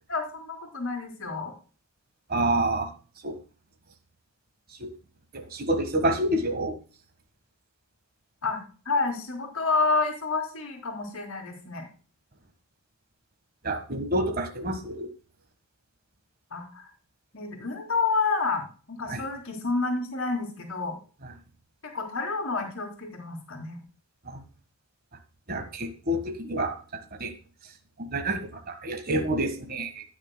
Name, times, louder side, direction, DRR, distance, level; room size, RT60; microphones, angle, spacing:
voice 1, 0.1-1.5 8.4-11.9 16.5-16.9 17.3-21.0 21.9-23.8, left 4 dB, 65° left, -2 dB, 2.7 m, -29 dB
voice 2, 2.3-2.9 3.2-3.4 4.8-4.9 5.3-6.7 13.6-15.1 19.1-19.2 24.3-24.4 25.5-26.7 27.2-27.3 28.0-28.4 28.7-30.0, right 1 dB, 40° right, 6 dB, 1.5 m, -28 dB
18.5 x 6.5 x 2.2 m, 0.38 s
head